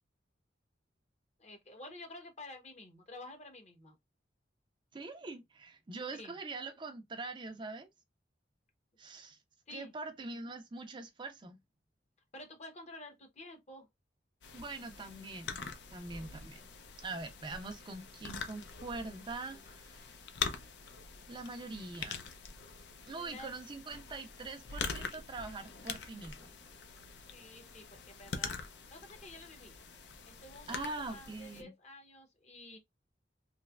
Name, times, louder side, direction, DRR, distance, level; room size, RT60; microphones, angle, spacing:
voice 1, 1.4-4.0 6.2-6.4 9.7-9.9 12.3-13.9 16.1-16.5 23.2-23.5 27.3-28.6 28.9-29.7 30.3-32.8, left 2 dB, 40° left, 0.9 m, -50 dB
voice 2, 4.9-7.9 9.0-9.4 9.7-11.6 14.5-15.6 15.9-16.7 17.0-20.1 21.3-22.2 23.1-26.5 30.7-31.7, right 3 dB, 25° right, 0.5 m, -43 dB
sound 1, 14.4-31.6, left 5 dB, 70° left, 0.6 m, -44 dB
3.2 x 2.9 x 2.3 m
head